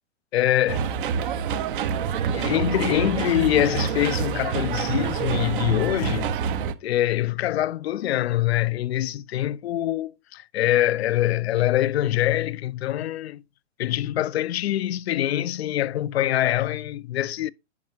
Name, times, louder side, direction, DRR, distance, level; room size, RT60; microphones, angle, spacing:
voice 1, 0.3-1.0 2.3-6.4 6.8-13.4 13.8-17.5, left 13 dB, 60° left, 0.4 m, -24 dB
sound 1, 0.7-6.7, right 7 dB, 45° right, 0.7 m, -27 dB
9.6 x 5.4 x 2.7 m
figure-of-eight pair, 115°, 36 cm